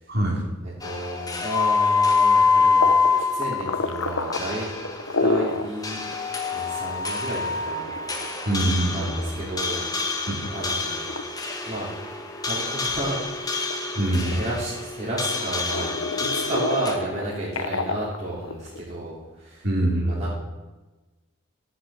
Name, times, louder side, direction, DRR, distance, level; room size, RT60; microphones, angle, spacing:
voice 1, 0.1-0.4 8.4-9.1 10.3-10.5 13.9-14.4 19.6-20.2, right 1 dB, 50° right, -1 dB, 3.4 m, -24 dB
voice 2, 0.6-2.9 3.3-4.7 5.2-8.4 8.9-9.9 10.5-11.1 11.7-11.9 12.5-13.6 14.3-19.7 20.1-20.3, right 2 dB, 30° right, -6 dB, 3.2 m, -32 dB
sound 1, 0.8-16.9, left 4 dB, 20° left, 1.6 m, -26 dB
sound 2, 2.8-5.7 6.1-6.2 6.6-6.7 7.4-9.7 10.2-10.7 11.1-11.2 11.8-12.7 13.0-14.9 15.3-18.8, left 3 dB, 75° left, 1.1 m, -29 dB
14.0 x 8.0 x 7.5 m, 1.2 s
head